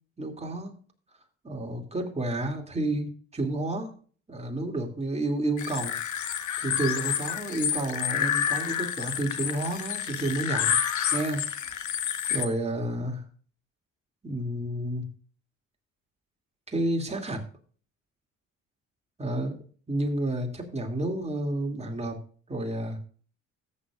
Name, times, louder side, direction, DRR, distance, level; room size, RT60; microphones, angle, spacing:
voice 1, 0.2-0.7 1.4-3.9 4.3-5.9 6.6-10.8 11.1-11.5 12.3-13.2 14.2-15.0 16.7-17.4 19.2-19.5 19.9-22.2 22.5-23.0, right 1 dB, 20° right, 2 dB, 2.6 m, -30 dB
sound 1, 5.6-12.5, left 9 dB, 75° left, 1.2 m, -29 dB
13.5 x 8.7 x 2.4 m, 0.42 s
cardioid pair, 90°, 30 cm